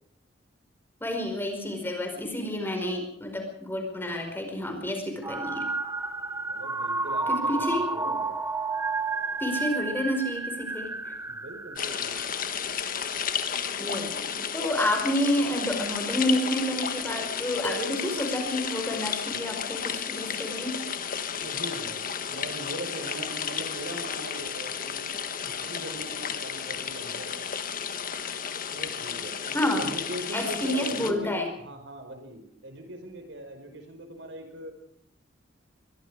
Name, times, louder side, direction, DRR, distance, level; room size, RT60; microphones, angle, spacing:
voice 1, 1.0-5.7 7.3-7.9 9.4-11.1 13.8-20.8 29.5-29.8 30.3-31.5, left 1 dB, 10° left, 3 dB, 5.1 m, -29 dB
sound 1, 5.2-12.5, right 3 dB, 15° right, 0.8 m, -31 dB
voice 2, 6.5-8.4 11.3-12.2 21.3-25.1 25.4-27.5 28.7-34.8, right 1 dB, 75° right, 6 dB, 4.9 m, -40 dB
sound 2, 11.8-31.1, left 7 dB, 50° left, 1.6 m, -33 dB
sound 3, 17.6-18.8, equal, 30° left, 1.6 m, -38 dB
23.5 x 23.0 x 4.9 m, 0.68 s
head